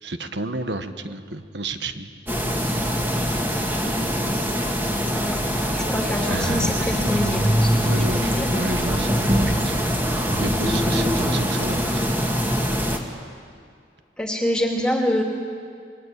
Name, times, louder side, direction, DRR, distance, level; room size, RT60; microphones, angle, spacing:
voice 1, 0.0-2.1 6.3-6.8 7.8-9.8 10.4-12.1, right 2 dB, 75° right, 9 dB, 1.4 m, -30 dB
sound 1, 2.3-13.0, equal, 10° right, 2.0 m, -23 dB
voice 2, 4.9-5.4 5.8-8.5 14.2-15.2, left 1 dB, 5° left, 0 dB, 2.6 m, -26 dB
28.5 x 22.5 x 8.4 m, 2.2 s
head